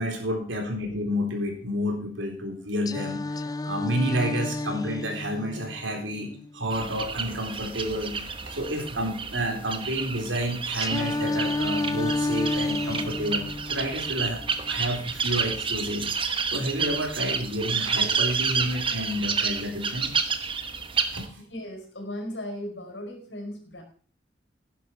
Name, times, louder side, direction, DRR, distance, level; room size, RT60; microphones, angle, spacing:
voice 1, 0.0-3.4 3.6-14.4 14.7-16.1 16.5-20.1 21.1-21.4, equal, 90° right, 3 dB, 4.0 m, -30 dB
Singing, 2.9-6.9 10.8-14.9, left 2 dB, 20° left, 0.4 m, -31 dB
sound 1, 6.7-21.3, right 5 dB, 30° right, 1.1 m, -30 dB
voice 2, 21.5-23.8, left 1 dB, 70° left, 4 dB, 4.7 m, -37 dB
12.0 x 10.5 x 4.7 m, 0.43 s
head